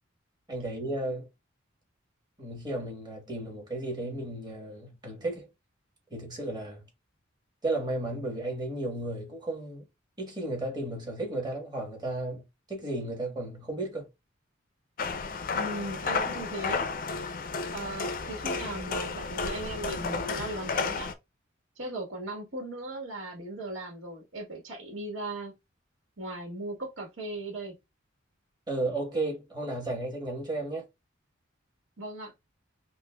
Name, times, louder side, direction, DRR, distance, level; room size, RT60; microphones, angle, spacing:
voice 1, 0.5-1.3 2.4-5.5 6.1-6.8 7.6-9.8 10.2-12.4 12.7-14.1 28.7-30.9, right 2 dB, 20° right, 1.2 m, -34 dB
sound 1, 15.0-21.1, left 4 dB, 45° left, 0.4 m, -32 dB
voice 2, 15.5-16.9 17.7-21.1 21.8-25.5 26.2-27.7 32.0-32.3, right 2 dB, 80° right, 1.3 m, -38 dB
5.1 x 2.1 x 2.2 m
head